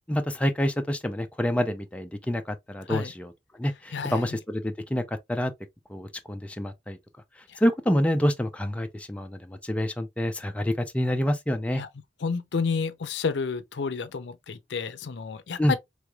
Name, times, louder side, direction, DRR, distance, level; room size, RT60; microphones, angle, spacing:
voice 1, 0.1-3.3 3.6-5.5 5.9-7.0 7.6-11.8 15.6-15.8, equal, 5° left, 0.4 m, -27 dB
voice 2, 3.9-4.4 7.5-7.6 11.7-11.9 12.2-15.8, left 5 dB, 70° left, 0.5 m, -30 dB
3.4 x 3.2 x 2.3 m
head